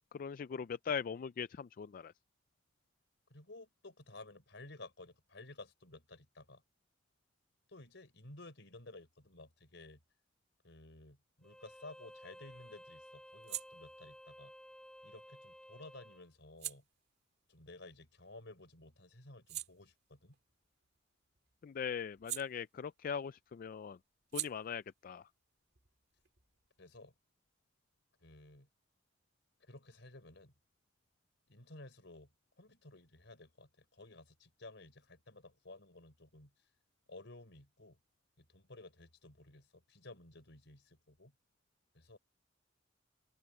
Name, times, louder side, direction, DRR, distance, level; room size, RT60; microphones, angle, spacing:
voice 1, 0.1-2.1 21.6-24.0 24.3-25.3, left 7 dB, 45° left, 0.3 m, -40 dB
voice 2, 3.3-6.6 7.7-10.0 10.6-14.5 15.0-16.8 17.5-20.4 26.8-27.1 28.2-28.7 29.6-30.5 31.5-32.3 32.6-36.5 37.1-38.0 38.4-41.3 41.9-42.2, left 2 dB, 65° left, 4.7 m, -54 dB
Bowed string instrument, 11.4-16.3, equal, 5° left, 6.5 m, -55 dB
sound 1, 11.7-18.6 19.0-23.2 23.5-26.9, right 13 dB, 60° right, 2.3 m, -50 dB
open air
head